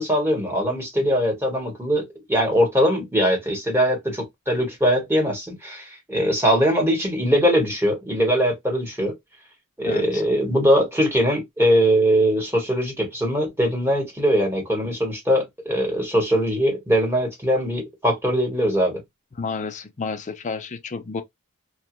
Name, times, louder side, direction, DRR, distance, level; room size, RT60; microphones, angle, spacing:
voice 1, 0.0-9.1 9.8-19.0, equal, 10° right, 1.2 m, -21 dB
voice 2, 9.8-10.2 19.4-21.2, left 4 dB, 35° left, 0.5 m, -31 dB
2.9 x 2.2 x 3.0 m
head